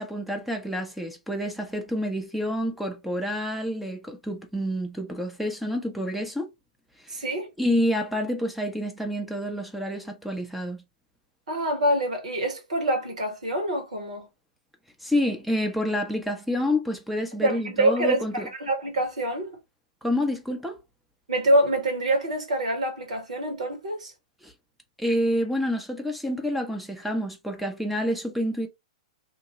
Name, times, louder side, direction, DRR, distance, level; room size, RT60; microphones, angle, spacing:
voice 1, 0.0-6.5 7.0-7.2 7.6-10.8 15.0-18.5 20.0-20.8 24.4-24.5 25.0-28.7, left 1 dB, ahead, 0.6 m, -28 dB
voice 2, 7.1-7.5 11.5-14.3 17.4-19.5 21.3-24.1, right 1 dB, 70° right, 1.4 m, -25 dB
2.9 x 2.2 x 2.8 m
figure-of-eight pair, 105°, 4 cm